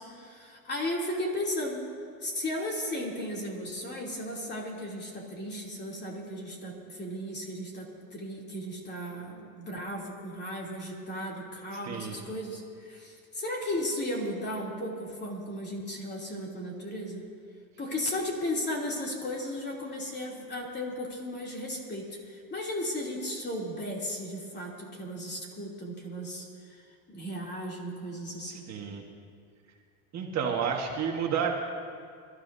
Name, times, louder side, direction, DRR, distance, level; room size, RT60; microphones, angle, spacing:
voice 1, 0.0-1.8 2.2-17.2 17.8-26.8 27.1-28.6, left 1 dB, 25° left, -2 dB, 2.8 m, -35 dB
voice 2, 11.8-12.2 28.5-29.0 30.1-31.5, right 7 dB, 40° right, 1 dB, 1.4 m, -30 dB
26.5 x 13.0 x 2.7 m, 2.3 s
supercardioid pair, 125°, 43 cm